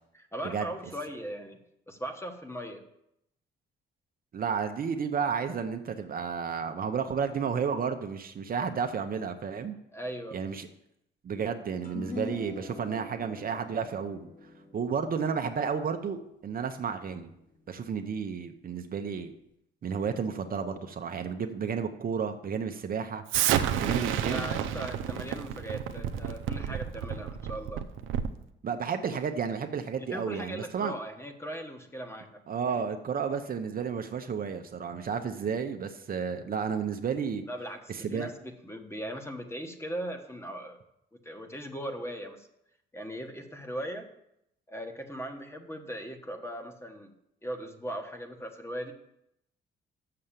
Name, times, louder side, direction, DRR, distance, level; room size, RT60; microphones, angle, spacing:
voice 1, 0.1-1.6 1.9-2.8 9.9-10.4 24.3-27.8 30.0-32.4 32.7-32.8 37.5-40.8 41.1-42.5 42.9-44.1 44.7-47.1 47.4-48.9, equal, 15° left, 5 dB, 1.2 m, -39 dB
voice 2, 4.3-9.8 10.3-10.7 11.2-14.3 14.7-17.3 17.7-19.3 19.8-23.2 23.8-24.5 28.6-30.9 32.5-37.4 37.9-38.3, right 6 dB, 45° right, 6 dB, 0.8 m, -32 dB
sound 1, 11.8-18.4, left 3 dB, 40° left, 1.7 m, -45 dB
Explosion, 23.3-28.4, right 10 dB, 90° right, 0.6 m, -30 dB
6.8 x 6.4 x 7.4 m, 0.80 s
cardioid pair, 90°, 20 cm